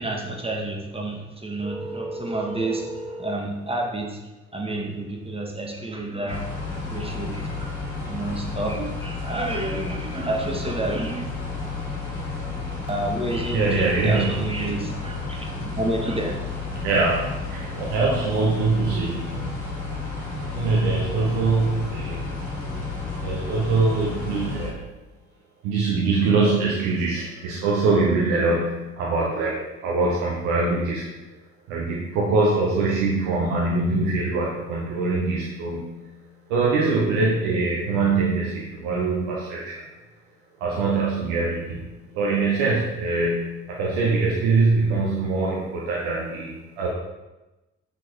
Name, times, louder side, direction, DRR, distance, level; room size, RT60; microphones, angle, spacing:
voice 1, 0.0-4.2 4.5-11.2 12.9-16.4, right 2 dB, 15° right, 0 dB, 1.7 m, -30 dB
sound 1, 6.3-24.7, left 3 dB, 75° left, 1.8 m, -31 dB
voice 2, 13.5-14.5 16.8-19.3 20.5-22.3 23.2-24.8 25.6-31.1 31.7-35.9 36.5-39.8 40.6-41.8 42.1-46.9, right 3 dB, 65° right, -3 dB, 1.2 m, -23 dB
6.9 x 5.8 x 4.6 m, 1.0 s
figure-of-eight pair, 40°, 37 cm